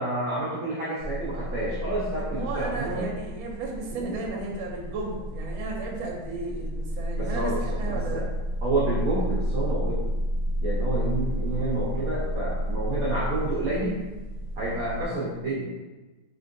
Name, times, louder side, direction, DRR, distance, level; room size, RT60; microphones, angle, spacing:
voice 1, 0.0-3.1 3.9-4.5 7.1-8.3 8.6-10.0 10.6-14.1 14.6-15.7, right 2 dB, 55° right, -7 dB, 1.0 m, -29 dB
sound 1, 1.0-15.1, equal, 55° left, 1.4 m, -31 dB
voice 2, 2.2-8.2, right 3 dB, 75° right, -1 dB, 1.4 m, -34 dB
4.5 x 3.5 x 2.6 m, 1.2 s
omnidirectional pair, 2.3 m